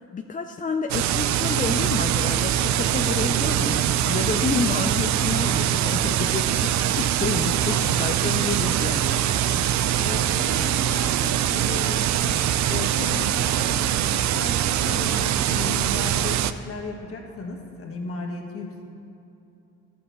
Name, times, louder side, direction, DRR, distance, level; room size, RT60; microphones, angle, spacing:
voice 1, 0.1-9.2, left 5 dB, 25° left, 5 dB, 0.4 m, -29 dB
sound 1, 0.9-16.5, right 11 dB, 70° right, 0.5 m, -23 dB
sound 2, 1.6-9.7, right 1 dB, 25° right, 1.8 m, -42 dB
voice 2, 7.5-8.1 10.0-18.8, left 3 dB, 50° left, 1 dB, 1.6 m, -36 dB
11.0 x 6.0 x 6.8 m, 2.8 s
cardioid pair, 90°, 30 cm